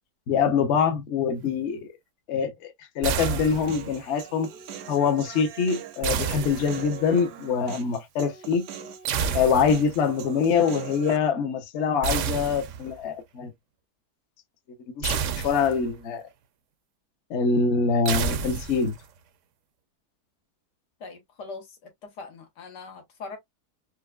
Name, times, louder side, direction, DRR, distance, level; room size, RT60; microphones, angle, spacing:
voice 1, 0.3-1.9 2.3-4.5 4.9-8.7 9.3-13.5 15.0-16.3 17.3-19.0, left 6 dB, 55° left, 0.9 m, -24 dB
sound 1, 3.0-4.0 6.0-7.1 9.0-10.0 12.0-13.0 15.0-16.0 18.1-19.1, right 7 dB, 70° right, 0.7 m, -30 dB
Human voice, 3.2-11.2, right 9 dB, 85° right, 1.3 m, -41 dB
voice 2, 21.0-23.4, left 4 dB, 85° left, 1.7 m, -41 dB
4.6 x 2.1 x 2.2 m
omnidirectional pair, 1.7 m